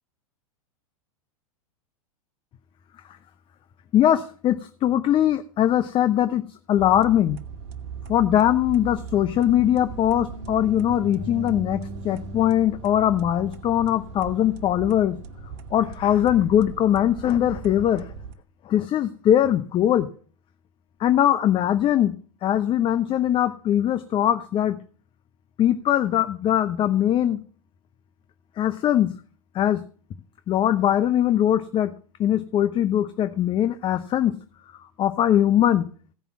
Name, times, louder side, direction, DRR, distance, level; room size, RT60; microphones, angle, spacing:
voice 1, 3.9-7.4 8.1-15.2 15.7-18.1 18.7-20.1 21.0-22.1 22.4-24.8 25.6-27.4 28.6-29.1 29.5-29.8 30.5-31.9 32.2-34.4 35.0-35.9, left 11 dB, 30° left, 11 dB, 0.7 m, -21 dB
sound 1, 6.8-18.3, right 4 dB, 50° right, 1.5 m, -38 dB
15.5 x 5.4 x 7.1 m, 0.43 s
hypercardioid pair, 100°, 18 cm